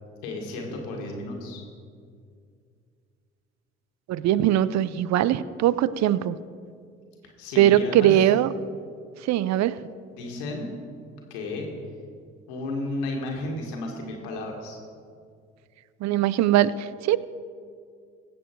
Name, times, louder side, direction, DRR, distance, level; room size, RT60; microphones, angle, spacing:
voice 1, 0.2-1.6 7.4-8.2 10.1-10.7 11.3-11.7 12.5-14.8, left 2 dB, 85° left, 1 dB, 1.8 m, -33 dB
voice 2, 4.1-6.4 7.6-8.5 9.2-9.8 16.0-17.2, right 12 dB, 60° right, 18 dB, 0.5 m, -21 dB
16.0 x 7.1 x 4.5 m, 2.2 s
hypercardioid pair, 55°, 32 cm